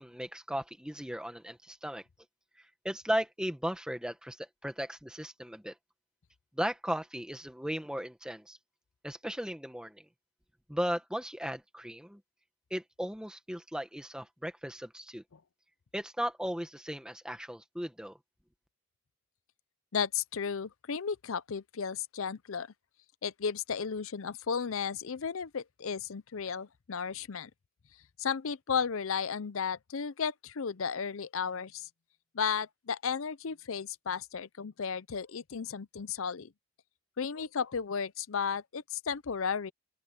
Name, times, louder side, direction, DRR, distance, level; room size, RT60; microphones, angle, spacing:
voice 1, 0.0-2.0 2.6-5.7 6.5-8.6 9.0-10.0 10.7-12.2 12.7-15.2 15.9-18.2, equal, 5° right, 1.6 m, -36 dB
voice 2, 19.9-22.7 23.2-27.5 28.2-31.9 32.3-36.5 37.2-39.7, left 6 dB, 75° left, 0.6 m, -34 dB
open air
head